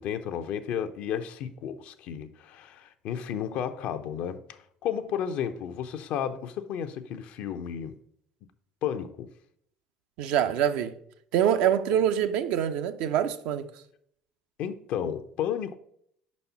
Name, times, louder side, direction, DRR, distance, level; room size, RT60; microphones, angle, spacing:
voice 1, 0.0-7.9 8.8-9.3 14.6-15.8, left 9 dB, 60° left, 0.5 m, -33 dB
voice 2, 10.2-10.9 11.3-13.7, right 9 dB, 65° right, 0.5 m, -25 dB
5.3 x 4.2 x 5.6 m
hypercardioid pair, 65°, 3 cm